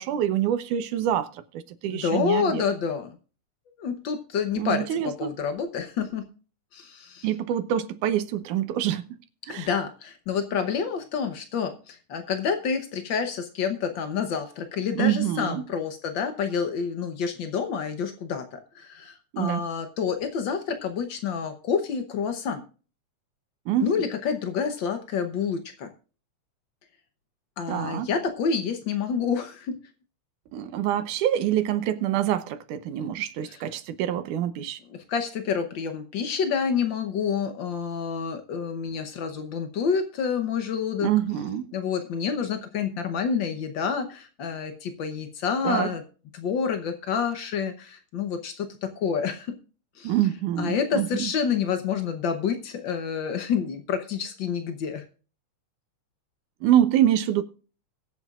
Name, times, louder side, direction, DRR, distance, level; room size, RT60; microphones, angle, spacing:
voice 1, 0.0-2.6 4.6-5.3 7.2-9.0 9.5-9.7 15.0-15.6 19.3-19.6 23.7-23.9 27.7-28.1 30.5-34.8 41.0-41.7 45.6-45.9 50.0-51.3 56.6-57.4, right 11 dB, 80° right, 2.4 m, -26 dB
voice 2, 1.9-3.1 3.8-6.3 6.7-7.3 9.5-22.6 23.8-25.9 27.6-29.8 33.5-33.6 34.9-41.1 41.7-46.0 46.3-49.5 50.0-50.1 50.6-55.0, left 6 dB, 85° left, 1.0 m, -28 dB
22.5 x 8.1 x 2.4 m
omnidirectional pair, 3.5 m